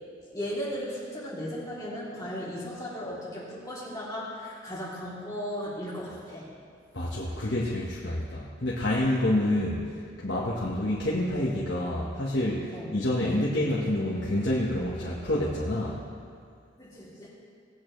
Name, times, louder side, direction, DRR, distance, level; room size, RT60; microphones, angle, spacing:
voice 1, 0.3-6.5 12.7-12.9 16.8-17.3, equal, 20° left, -8 dB, 2.9 m, -36 dB
voice 2, 6.9-16.0, left 1 dB, 55° left, -5 dB, 1.3 m, -28 dB
19.0 x 8.7 x 3.2 m, 2.3 s
head